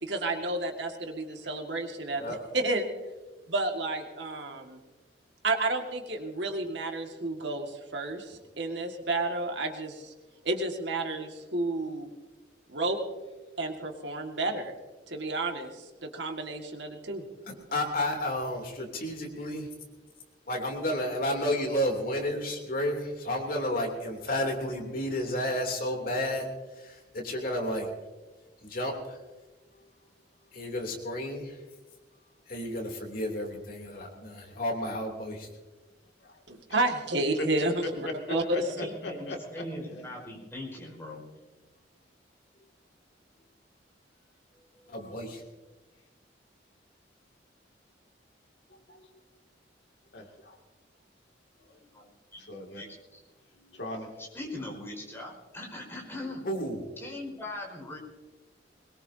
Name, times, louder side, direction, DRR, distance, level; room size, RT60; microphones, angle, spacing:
voice 1, 0.0-2.2 2.5-2.9 3.5-4.8 5.4-10.1 10.4-12.1 12.7-13.0 13.6-14.7 15.1-17.2 36.5-38.9, right 2 dB, 70° right, 3 dB, 2.1 m, -31 dB
voice 2, 17.5-19.7 20.5-26.5 26.8-27.9 28.6-29.2 30.5-31.6 32.5-35.5 44.9-45.4 56.4-56.8, left 1 dB, 50° left, 1 dB, 3.1 m, -31 dB
voice 3, 37.8-39.6 44.8-44.9 48.7-49.1 50.1-50.6 51.6-51.8 52.4-52.8 53.6-54.1, left 2 dB, 70° left, 2 dB, 2.5 m, -39 dB
voice 4, 38.4-41.2 51.9-52.4 52.8-53.2 54.2-56.5 57.0-58.0, left 1 dB, 15° left, -2 dB, 5.4 m, -41 dB
22.5 x 21.5 x 2.8 m, 1.2 s
head